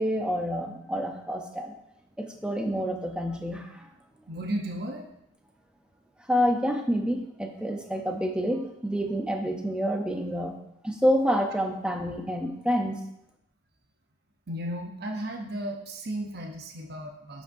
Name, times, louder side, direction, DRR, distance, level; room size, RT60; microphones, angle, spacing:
voice 1, 0.0-1.7 2.2-3.9 6.3-10.5 10.8-13.0, equal, 5° right, 3 dB, 0.6 m, -28 dB
voice 2, 4.3-5.1 14.5-17.4, right 1 dB, 50° right, 1 dB, 0.9 m, -34 dB
11.5 x 5.3 x 2.7 m, 0.77 s
head